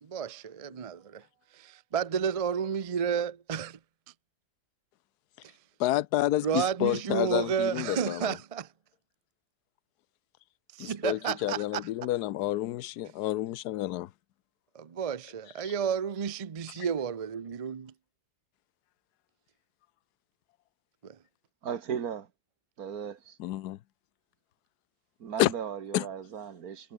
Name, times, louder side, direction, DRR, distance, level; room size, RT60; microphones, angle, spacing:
voice 1, 0.0-1.2 1.5-3.8 6.4-8.7 10.7-11.8 14.7-17.9 21.0-21.2, right 7 dB, 45° right, 0.4 m, -31 dB
voice 2, 5.8-8.4 10.8-14.1 15.6-15.7 23.4-23.8 25.4-25.5 25.9-26.1, left 15 dB, 80° left, 1.2 m, -29 dB
voice 3, 21.6-22.3 22.8-23.4 25.2-26.9, right 7 dB, 70° right, 2.0 m, -36 dB
omnidirectional pair, 1.7 m